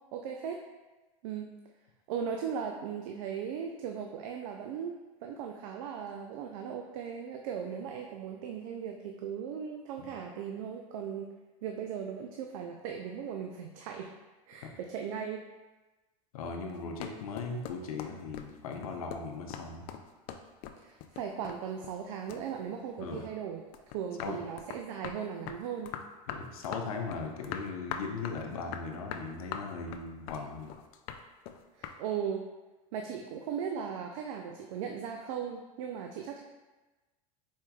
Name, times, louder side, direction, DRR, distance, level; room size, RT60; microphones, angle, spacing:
voice 1, 0.1-0.6 1.2-1.5 2.1-11.3 11.6-14.1 14.5-15.4 20.8-23.6 23.9-25.9 31.7-32.5 32.9-36.4, right 7 dB, 70° right, 3 dB, 0.4 m, -38 dB
voice 2, 16.3-19.9 23.0-23.2 24.2-24.4 26.3-30.7, left 4 dB, 85° left, 2 dB, 0.7 m, -38 dB
sound 1, 16.7-22.0 22.3-23.4 23.7-32.0, left 8 dB, 55° left, 0.4 m, -42 dB
4.5 x 4.4 x 2.3 m, 1.2 s
hypercardioid pair, 100°, 18 cm